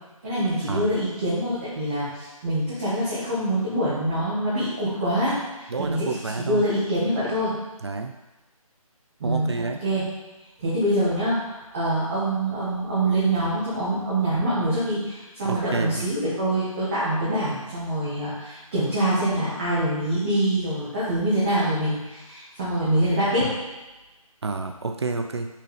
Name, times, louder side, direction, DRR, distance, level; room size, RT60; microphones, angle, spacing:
voice 1, 0.2-7.6 9.2-10.1 10.6-23.5, right 1 dB, 20° right, -11 dB, 1.5 m, -25 dB
voice 2, 5.7-6.6 7.8-8.1 9.2-9.8 15.5-16.0 24.4-25.5, right 3 dB, 45° right, 6 dB, 0.5 m, -29 dB
5.6 x 3.7 x 5.0 m, 1.1 s
figure-of-eight pair, 165°, 19 cm